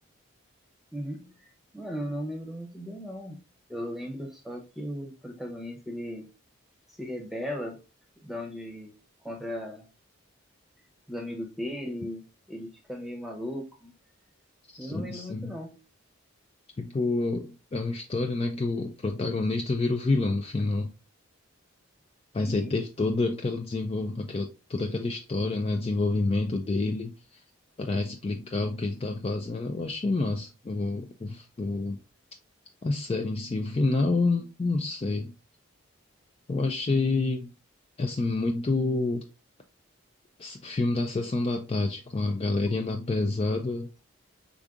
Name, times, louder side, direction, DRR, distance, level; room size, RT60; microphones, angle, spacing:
voice 1, 0.9-1.3 1.7-3.4 3.7-6.3 6.9-7.8 8.2-8.9 9.2-9.9 11.1-12.2 12.5-13.9 14.8-15.8 22.4-22.7, equal, ahead, 0.8 m, -37 dB
voice 2, 14.7-15.5 16.8-20.9 22.3-27.4 27.8-32.0 32.8-35.3 36.5-37.5 38.0-39.2 40.4-43.9, left 3 dB, 30° left, 0.3 m, -28 dB
5.0 x 3.6 x 2.4 m
head